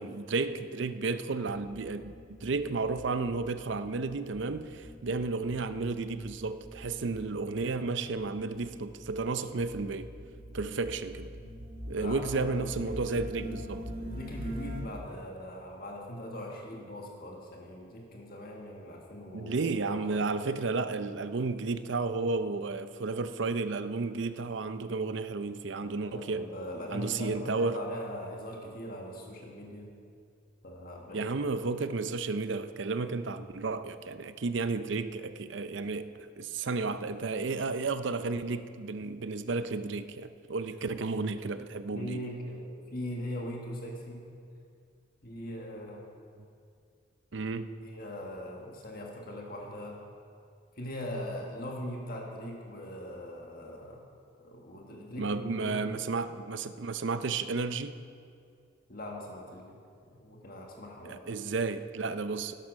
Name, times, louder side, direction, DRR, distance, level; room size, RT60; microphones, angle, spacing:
voice 1, 0.0-2.1 2.4-10.1 10.5-11.3 11.9-13.9 19.3-26.5 26.9-27.8 31.1-36.1 36.4-42.2 47.3-47.7 55.2-57.9 61.0-62.5, right 3 dB, 65° right, 11 dB, 0.6 m, -32 dB
sound 1, 1.5-14.8, equal, 45° right, 2.1 m, -44 dB
voice 2, 11.8-13.5 14.0-19.5 19.9-20.2 25.8-29.9 30.6-31.3 41.9-44.2 45.2-46.0 47.8-50.0 50.8-54.0 54.4-56.0 58.9-59.8 60.2-61.4, left 1 dB, 50° left, 0 dB, 1.7 m, -41 dB
12.0 x 11.5 x 6.2 m, 2.3 s
head